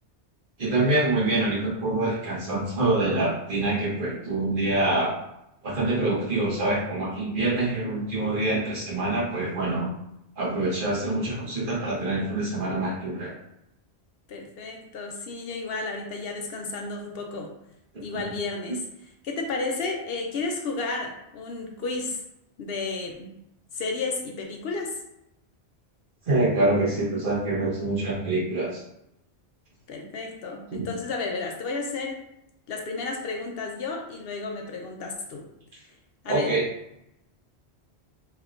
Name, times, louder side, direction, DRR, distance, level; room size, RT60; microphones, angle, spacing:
voice 1, 0.6-5.1 5.6-9.9 10.4-13.3 26.3-28.8 30.7-30.8 36.3-36.6, right 2 dB, 50° right, -4 dB, 1.1 m, -25 dB
voice 2, 14.3-17.5 18.0-22.2 22.6-23.3 23.7-25.0 29.9-32.2 32.7-35.5 36.2-36.6, left 3 dB, 65° left, 2 dB, 0.8 m, -32 dB
3.5 x 3.2 x 2.4 m, 0.83 s
omnidirectional pair, 1.1 m